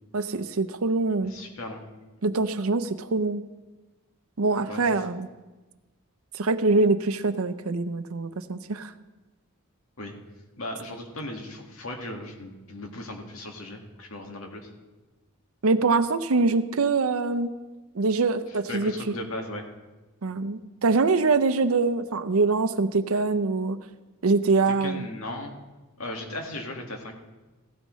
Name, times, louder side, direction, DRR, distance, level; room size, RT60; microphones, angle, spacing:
voice 1, 0.1-1.3 2.2-3.4 4.4-5.3 6.3-8.9 15.6-17.5 17.9-18.9 20.2-23.8 24.2-25.1, right 3 dB, 80° right, 11 dB, 0.7 m, -24 dB
voice 2, 1.2-1.8 4.7-4.9 10.0-10.2 10.6-14.7 18.5-19.7 24.6-25.5 26.0-27.2, left 1 dB, 75° left, 2 dB, 1.9 m, -37 dB
16.5 x 12.5 x 3.2 m, 1.2 s
head